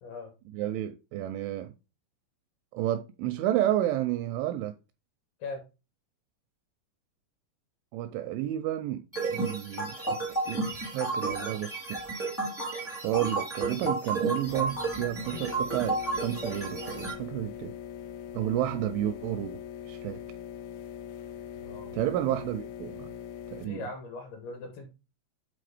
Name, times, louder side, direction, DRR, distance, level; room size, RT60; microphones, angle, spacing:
voice 1, 0.5-1.7 2.7-4.7 7.9-9.0 9.3-12.0 13.0-17.7 18.3-20.2 21.9-23.1 23.5-23.9, right 12 dB, 85° right, 2.7 m, -31 dB
sound 1, 9.1-17.1, right 3 dB, 15° right, 0.4 m, -32 dB
sound 2, 14.4-23.6, left 9 dB, 85° left, 2.4 m, -42 dB
voice 2, 21.6-22.0 23.6-24.9, left 3 dB, 70° left, 2.5 m, -40 dB
8.6 x 3.8 x 4.9 m
omnidirectional pair, 5.9 m